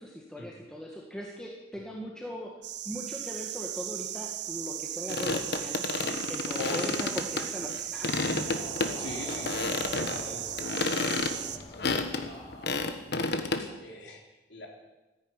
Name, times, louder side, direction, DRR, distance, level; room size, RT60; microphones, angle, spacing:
voice 1, 0.0-2.5 2.9-8.1, equal, 5° left, -2 dB, 1.8 m, -39 dB
sound 1, 2.6-11.6, right 11 dB, 65° right, 0.9 m, -37 dB
sound 2, 5.1-7.8 8.0-8.9 9.2-10.2 10.6-13.6, left 3 dB, 65° left, 1.3 m, -30 dB
voice 2, 6.6-7.0 9.0-11.5 12.2-12.8 13.6-14.7, left 2 dB, 80° left, 0 dB, 3.6 m, -42 dB
Crowd, 7.9-13.1, left 1 dB, 25° left, 1.2 m, -45 dB
14.0 x 10.5 x 9.7 m, 1.1 s
head